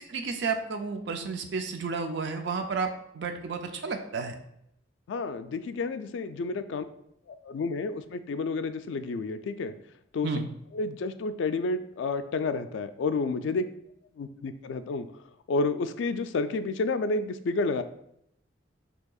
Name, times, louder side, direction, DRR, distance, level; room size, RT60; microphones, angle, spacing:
voice 1, 0.1-2.9 3.1-4.3 10.2-10.5, right 4 dB, 60° right, 5 dB, 0.4 m, -31 dB
voice 2, 5.1-6.8 7.3-9.7 10.1-10.3 10.7-13.7 14.2-15.1 15.5-17.8, left 3 dB, 70° left, 11 dB, 0.3 m, -30 dB
6.3 x 2.8 x 2.3 m, 0.74 s
head